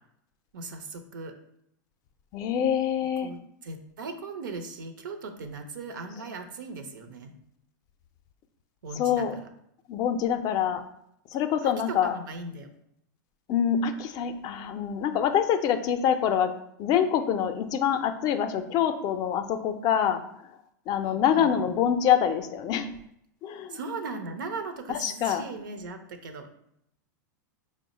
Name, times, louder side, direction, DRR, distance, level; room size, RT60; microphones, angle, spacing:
voice 1, 0.5-1.3 3.2-3.4 3.6-7.3 8.8-9.5 11.6-12.7 21.0-21.6 23.7-26.5, right 3 dB, 85° right, 7 dB, 0.6 m, -38 dB
voice 2, 2.3-3.3 9.0-9.4 9.9-10.8 11.3-12.2 13.5-16.5 16.8-20.2 20.9-22.9 23.4-23.8 24.9-25.4, left 8 dB, 40° left, 8 dB, 0.4 m, -25 dB
4.6 x 2.0 x 3.9 m, 0.75 s
hypercardioid pair, 125°, 10 cm